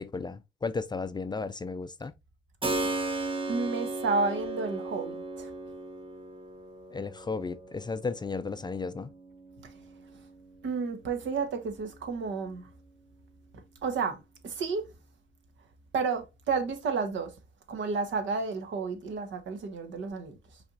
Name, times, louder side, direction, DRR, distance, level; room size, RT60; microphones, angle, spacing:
voice 1, 0.0-2.1 6.9-9.1, left 4 dB, 20° left, 0.4 m, -34 dB
Keyboard (musical), 2.6-11.2, right 2 dB, 25° right, 1.0 m, -37 dB
voice 2, 3.5-5.5 9.6-9.7 10.6-12.7 13.8-14.8 15.9-17.3 17.7-20.6, right 4 dB, 70° right, 1.3 m, -31 dB
5.6 x 3.5 x 2.6 m
cardioid pair, 90°, 20 cm